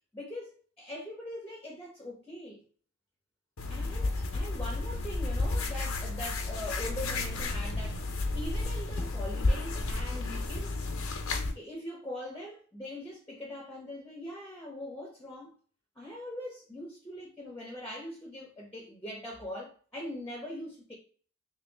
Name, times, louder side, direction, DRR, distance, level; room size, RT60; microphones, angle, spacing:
voice 1, 0.1-2.6 3.7-8.0 8.3-10.7 11.5-15.6 16.0-20.9, left 1 dB, 10° left, 0.9 m, -42 dB
sound 1, 3.6-11.5, left 2 dB, 80° left, 0.8 m, -32 dB
3.4 x 2.9 x 3.5 m
head